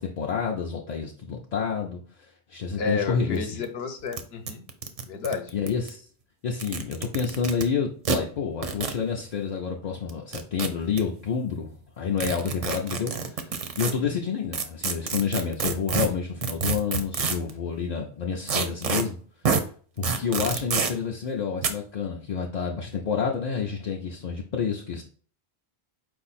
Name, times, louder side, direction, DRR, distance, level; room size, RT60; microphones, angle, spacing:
voice 1, 0.0-3.6 5.5-6.1 6.4-19.2 20.0-25.0, left 6 dB, 50° left, 0 dB, 0.5 m, -29 dB
voice 2, 2.8-4.6 5.0-5.5 13.8-14.1, left 4 dB, 70° left, 6 dB, 0.9 m, -31 dB
sound 1, 3.4-3.5 3.6-3.7 4.1-4.2 4.5-5.9 6.5-7.6 8.0-8.2 8.6-9.0 10.1-11.0 12.2-13.9 14.5-17.5 18.5-19.0 19.4-19.6 20.0-20.9 21.6-21.7, right 5 dB, 50° right, 0.5 m, -27 dB
4.7 x 2.6 x 4.1 m, 0.43 s
omnidirectional pair, 1.1 m